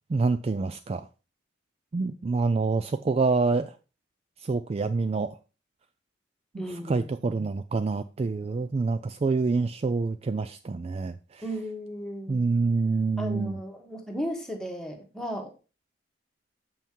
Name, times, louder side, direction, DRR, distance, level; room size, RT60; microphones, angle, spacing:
voice 1, 0.1-1.1 1.9-3.8 4.4-5.4 6.5-11.4 12.3-13.6, right 4 dB, 30° right, 0.3 m, -27 dB
voice 2, 6.5-7.1 11.4-12.4 13.2-15.5, equal, 5° left, 1.4 m, -35 dB
7.0 x 5.7 x 4.5 m
head